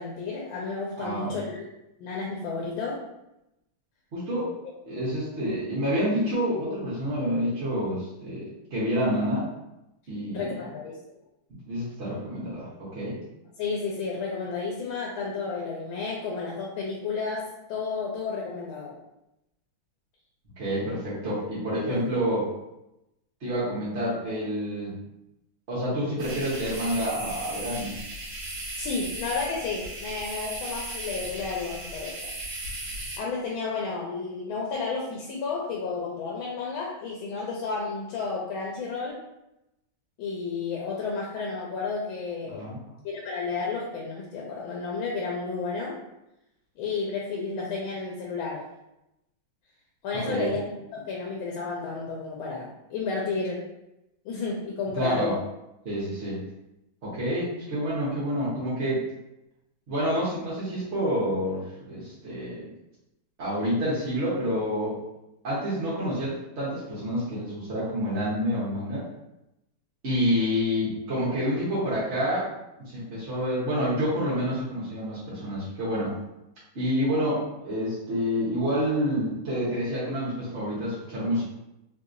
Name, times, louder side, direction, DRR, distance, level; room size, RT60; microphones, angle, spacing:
voice 1, 0.0-1.6 2.0-3.0 4.6-4.7 10.3-11.0 13.6-18.9 21.9-22.0 28.8-32.3 33.2-39.2 40.2-42.7 43.0-46.0 46.8-48.6 50.0-53.6 54.2-55.4, left 4 dB, 85° left, -2 dB, 1.4 m, -32 dB
voice 2, 1.0-1.4 4.1-4.5 4.9-8.4 8.7-9.4 10.1-10.4 11.7-13.2 20.6-22.5 23.4-24.9 25.7-28.1 42.5-42.8 50.3-50.5 54.9-55.3 55.8-56.4 57.0-59.0 59.9-62.7 63.4-65.0 65.4-69.0 70.0-72.5 72.9-76.1 76.7-81.4, equal, 45° right, -10 dB, 1.1 m, -28 dB
sound 1, 26.2-33.2, right 2 dB, 65° right, 1.5 m, -36 dB
3.4 x 2.7 x 2.5 m, 0.89 s
omnidirectional pair, 2.2 m